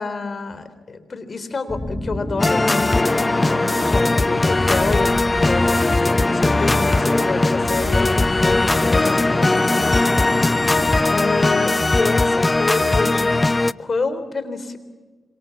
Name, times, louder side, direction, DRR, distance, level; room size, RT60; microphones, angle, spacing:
voice 1, 0.0-10.3 11.1-13.4 13.8-14.8, left 4 dB, 45° left, 12 dB, 3.7 m, -28 dB
sound 1, 1.7-11.1, left 1 dB, 10° left, 2.5 m, -28 dB
sound 2, 2.4-13.7, left 2 dB, 25° left, 0.7 m, -19 dB
26.5 x 25.0 x 7.2 m, 1.3 s
cardioid pair, 70°, 0 cm